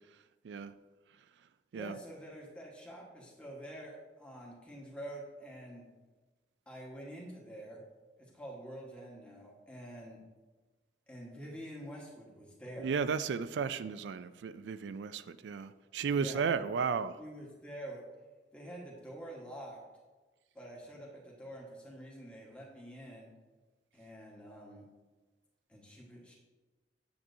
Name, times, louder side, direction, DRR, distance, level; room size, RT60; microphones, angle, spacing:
voice 1, 1.7-5.8 6.7-7.8 8.2-10.2 11.1-12.9 16.2-16.5 17.2-18.0 18.5-19.8 20.5-23.3 23.9-24.8 25.7-26.3, right 1 dB, 5° left, 1.4 m, -47 dB
voice 2, 12.8-17.2, right 6 dB, 85° right, 0.3 m, -34 dB
8.6 x 7.4 x 2.7 m
head